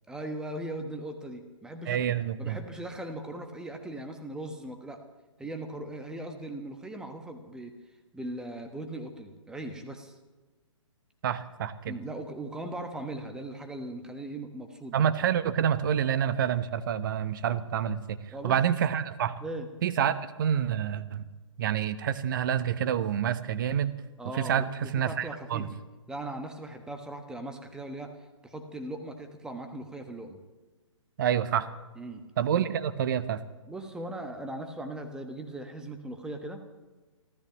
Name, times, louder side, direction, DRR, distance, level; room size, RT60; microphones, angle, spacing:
voice 1, 0.1-2.0 2.4-5.0 5.4-7.7 8.1-10.1 11.9-15.0 18.3-18.6 19.4-19.7 24.2-25.8 26.1-28.1 28.4-30.4 32.0-32.2 33.7-36.6, right 1 dB, 5° right, 5 dB, 1.2 m, -39 dB
voice 2, 1.9-2.6 11.2-12.0 14.9-19.3 19.8-21.3 21.6-23.9 24.3-24.7 24.9-25.7 31.2-31.7 32.4-33.4, right 9 dB, 40° right, 14 dB, 0.9 m, -28 dB
29.5 x 13.5 x 3.0 m, 1.2 s
figure-of-eight pair, 130°, 17 cm